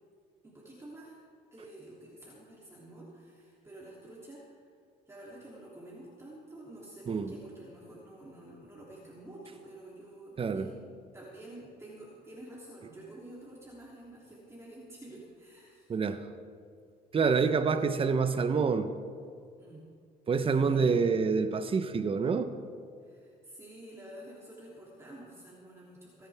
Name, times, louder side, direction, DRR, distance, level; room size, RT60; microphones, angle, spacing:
voice 1, 0.4-1.1 1.5-4.7 5.1-10.8 11.1-15.9 19.6-19.8 20.5-21.0 23.0-26.3, right 1 dB, 15° right, -6 dB, 3.1 m, -49 dB
voice 2, 10.4-10.7 15.9-16.2 17.1-18.9 20.3-22.5, right 5 dB, 35° right, 9 dB, 1.0 m, -27 dB
29.0 x 10.5 x 3.6 m, 2.2 s
cardioid pair, 110°, 17 cm